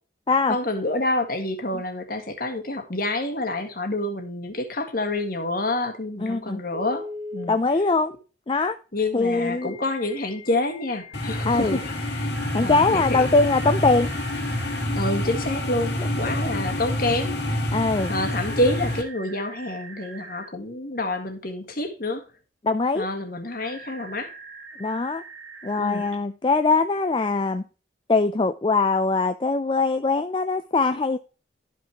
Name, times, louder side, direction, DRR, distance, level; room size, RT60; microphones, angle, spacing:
voice 1, 0.5-7.0 7.3-7.8 8.9-11.9 12.6-13.2 14.9-17.6 18.1-22.2 22.9-24.3 25.7-26.0, left 2 dB, 50° left, 1.7 m, -28 dB
voice 2, 6.2-6.6 7.5-8.1 8.5-8.8 9.1-9.7 11.5-11.8 12.5-14.1 16.0-16.1 17.7-18.1 22.6-23.1 24.8-25.2 25.6-27.6 28.1-31.2, left 3 dB, 25° left, 0.4 m, -22 dB
Telephone, 6.7-7.5 9.3-14.8 17.9-20.5 23.6-26.1, equal, 85° right, 2.0 m, -42 dB
sound 1, 11.1-19.0, left 1 dB, 65° left, 2.0 m, -27 dB
12.5 x 5.8 x 2.9 m
head